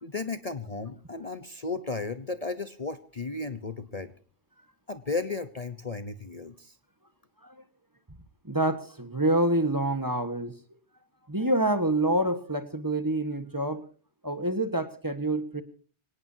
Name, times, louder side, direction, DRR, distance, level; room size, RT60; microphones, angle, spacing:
voice 1, 0.0-4.1 4.9-6.7, left 3 dB, 35° left, 11 dB, 1.0 m, -34 dB
voice 2, 8.4-10.5 11.3-13.8 14.2-15.6, right 1 dB, 20° right, 10 dB, 1.4 m, -27 dB
25.0 x 18.5 x 2.8 m, 0.39 s
omnidirectional pair, 1.2 m